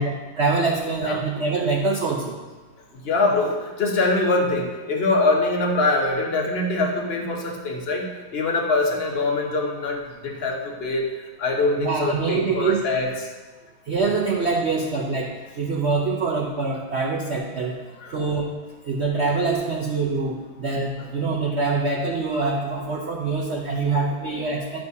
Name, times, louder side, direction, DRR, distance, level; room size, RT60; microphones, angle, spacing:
voice 1, 0.0-2.4 11.8-12.8 13.9-17.8 18.1-18.5 18.8-24.8, right 4 dB, 75° right, -1 dB, 0.6 m, -24 dB
voice 2, 3.0-11.0 11.4-13.1 18.0-18.1 23.9-24.0 24.4-24.5, left 2 dB, 40° left, 1 dB, 0.9 m, -23 dB
11.5 x 6.5 x 2.7 m, 1.3 s
omnidirectional pair, 2.1 m